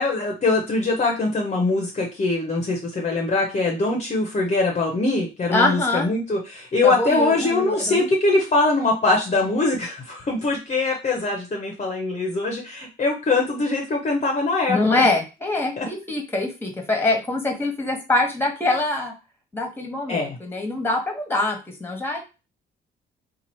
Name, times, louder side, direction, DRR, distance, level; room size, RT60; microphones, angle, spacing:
voice 1, 0.0-15.1 15.8-15.9 20.1-20.4, left 3 dB, 35° left, 1 dB, 0.8 m, -22 dB
voice 2, 5.5-6.1 6.8-8.1 14.7-19.1 19.5-22.2, left 2 dB, 10° left, 3 dB, 1.3 m, -24 dB
3.0 x 2.4 x 4.3 m, 0.29 s
cardioid pair, 90°, 20 cm